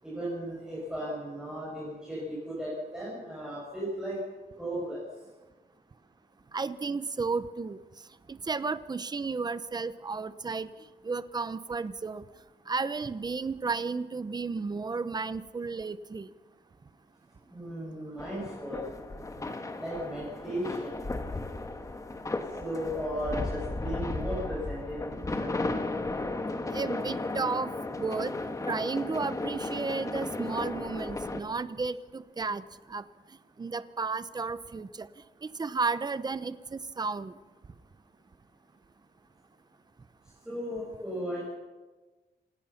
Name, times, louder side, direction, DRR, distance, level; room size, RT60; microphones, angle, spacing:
voice 1, 0.0-4.2 4.6-5.0 17.5-18.9 19.8-20.9 22.6-25.7 40.4-41.5, equal, 5° right, -7 dB, 7.3 m, -36 dB
voice 2, 6.5-7.8 8.3-10.7 11.0-12.2 12.7-16.3 26.7-28.4 28.6-32.6 32.9-33.0 33.6-35.1 35.4-37.4, right 4 dB, 25° right, 14 dB, 0.8 m, -33 dB
sound 1, 18.2-31.4, left 2 dB, 20° left, 1.4 m, -35 dB
27.5 x 19.5 x 5.9 m, 1.2 s
wide cardioid pair, 175°, 17 cm